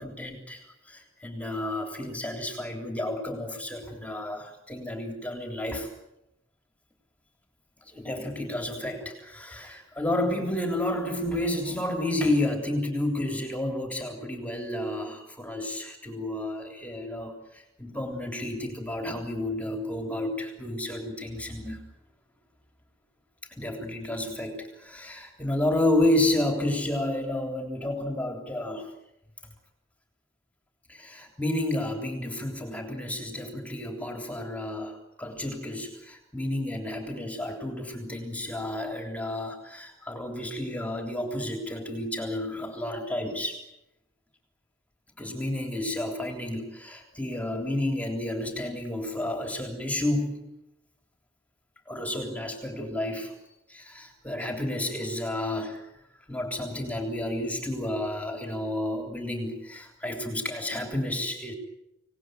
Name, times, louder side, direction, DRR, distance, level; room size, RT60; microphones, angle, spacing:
voice 1, 0.0-5.9 7.8-21.8 23.5-28.9 30.9-43.6 45.1-50.4 51.9-53.3 53.7-55.9 56.3-61.5, left 1 dB, 5° left, 3 dB, 3.4 m, -31 dB
26.5 x 18.5 x 9.2 m, 0.87 s
head